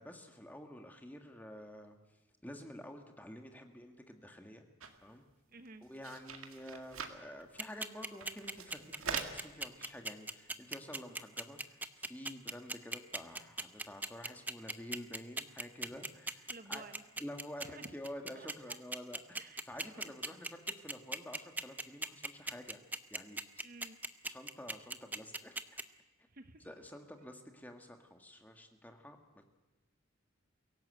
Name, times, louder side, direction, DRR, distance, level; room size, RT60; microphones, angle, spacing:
voice 1, 0.0-2.0 2.4-4.7 5.0-5.2 5.8-16.8 17.2-22.8 23.1-23.4 24.2-25.8 26.6-29.2, left 1 dB, 10° left, 4 dB, 1.8 m, -49 dB
sound 1, 4.8-5.0 5.3-5.4 5.7-7.2 7.8-7.9 8.1-9.4 9.8-9.9, right 6 dB, 85° right, 2.0 m, -43 dB
voice 2, 5.5-5.9 16.5-17.0 17.6-18.0 18.3-18.8 19.4-20.1 23.6-24.0 26.3-26.7 27.2-27.3, right 3 dB, 45° right, 9 dB, 1.0 m, -53 dB
sound 2, 7.6-25.8, right 2 dB, 10° right, 0.7 m, -38 dB
24.0 x 17.0 x 8.1 m, 1.1 s
head